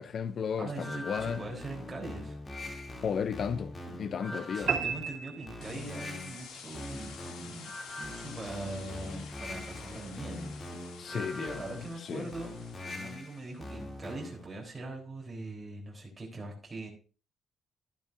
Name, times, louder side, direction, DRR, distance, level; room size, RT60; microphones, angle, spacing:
voice 1, 0.0-1.4 3.0-4.7 11.0-11.6 12.0-12.3, left 7 dB, 55° left, 0.6 m, -34 dB
voice 2, 0.6-2.4 4.1-16.9, right 2 dB, 20° right, 3.7 m, -42 dB
sound 1, 0.7-14.5, left 2 dB, 30° left, 2.8 m, -43 dB
sound 2, 4.7-6.2, right 7 dB, 60° right, 2.7 m, -33 dB
sound 3, 5.6-13.8, left 6 dB, 85° left, 2.4 m, -50 dB
12.0 x 12.0 x 2.6 m
cardioid pair, 90°, 0 cm